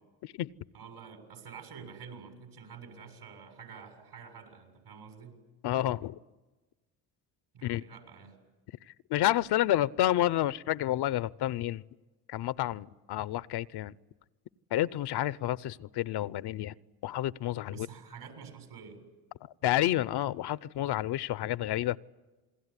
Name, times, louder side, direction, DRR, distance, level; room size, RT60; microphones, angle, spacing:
voice 1, 0.7-5.4 7.5-8.4 17.7-19.0, right 6 dB, 70° right, 7.1 m, -48 dB
voice 2, 5.6-6.1 7.6-7.8 9.1-11.8 12.3-13.9 14.7-16.7 17.0-17.9 19.6-22.0, left 13 dB, 65° left, 0.8 m, -29 dB
28.5 x 21.0 x 9.9 m
supercardioid pair, 55°, 42 cm